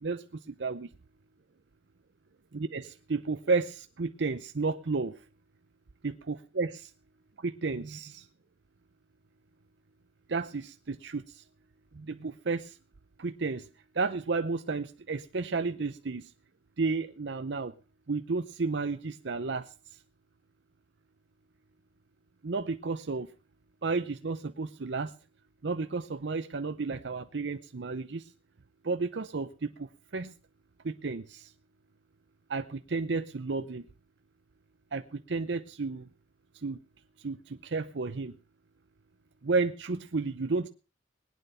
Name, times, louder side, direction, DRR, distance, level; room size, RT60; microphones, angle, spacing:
voice 1, 0.0-0.9 2.5-5.2 6.0-6.9 7.4-8.3 10.3-11.4 11.9-12.8 13.2-13.7 13.9-16.3 16.8-17.7 18.1-19.7 22.4-23.3 23.8-25.1 25.6-28.3 28.8-30.3 30.8-31.5 32.5-33.8 34.9-36.1 36.6-36.8 37.2-38.3 39.4-40.7, right 4 dB, 65° right, 9 dB, 0.7 m, -32 dB
21.0 x 9.1 x 5.5 m, 0.34 s
head